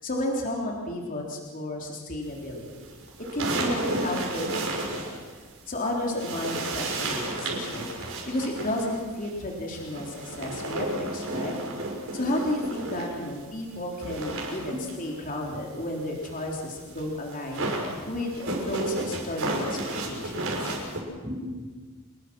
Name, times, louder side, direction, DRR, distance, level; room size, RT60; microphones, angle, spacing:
voice 1, 0.0-3.0 3.3-5.1 5.7-7.9 8.3-11.6 12.1-17.7 18.1-19.8 20.0-20.8, left 1 dB, 40° left, -1 dB, 3.6 m, -32 dB
sound 1, 2.5-5.8 6.1-13.4 13.7-21.0, right 2 dB, 65° right, 6.1 m, -33 dB
voice 2, 12.9-13.3 14.7-14.9 20.9-21.9, left 1 dB, 20° right, -1 dB, 7.1 m, -38 dB
28.5 x 21.0 x 6.2 m, 1.4 s
head